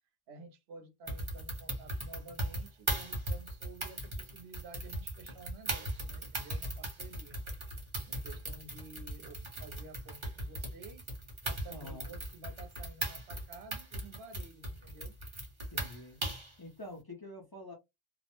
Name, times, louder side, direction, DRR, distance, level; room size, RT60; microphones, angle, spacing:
voice 1, 0.3-7.4 8.1-11.0 11.4-15.1, right 3 dB, 80° right, 0.9 m, -52 dB
sound 1, 1.1-16.5, right 1 dB, 30° right, 0.8 m, -38 dB
voice 2, 11.7-12.1 15.7-16.2 16.6-17.7, left 1 dB, 30° left, 0.5 m, -47 dB
2.4 x 2.0 x 2.9 m
omnidirectional pair, 1.1 m